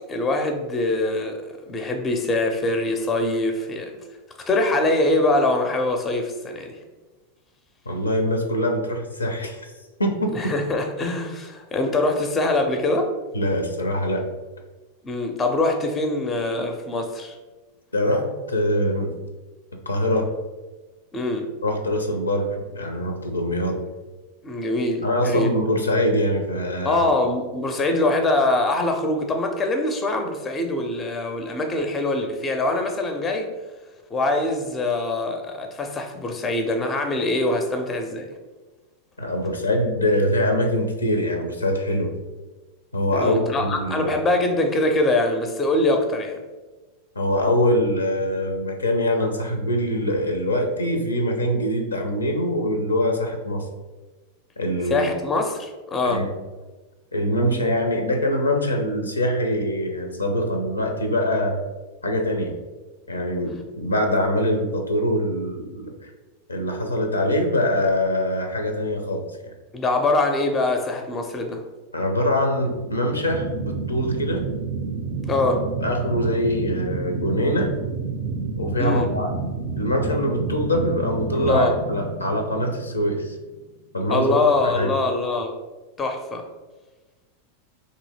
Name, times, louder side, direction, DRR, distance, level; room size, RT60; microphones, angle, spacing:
voice 1, 0.1-4.0 4.4-6.8 10.3-13.1 15.0-17.4 21.1-21.5 24.4-25.5 26.8-33.5 34.1-38.3 43.1-46.4 54.9-56.2 69.7-71.6 75.2-75.6 78.8-79.1 81.3-81.7 84.1-85.6 86.0-86.5, left 2 dB, 20° left, 4 dB, 0.5 m, -23 dB
voice 2, 7.9-9.7 10.0-10.5 13.3-14.3 17.9-19.1 19.7-20.3 21.6-23.8 25.0-27.1 39.2-42.1 42.9-44.1 47.2-53.7 54.6-55.1 56.0-56.3 57.1-61.6 62.0-62.6 63.1-66.1 66.5-69.5 71.9-74.5 75.8-77.8 78.6-79.3 79.8-83.4 83.9-84.4 84.6-84.9, equal, 80° left, 4 dB, 0.5 m, -23 dB
sound 1, 72.6-83.5, right 4 dB, 55° right, 0.4 m, -30 dB
2.9 x 2.7 x 4.0 m, 1.2 s
figure-of-eight pair, 90°, 0 cm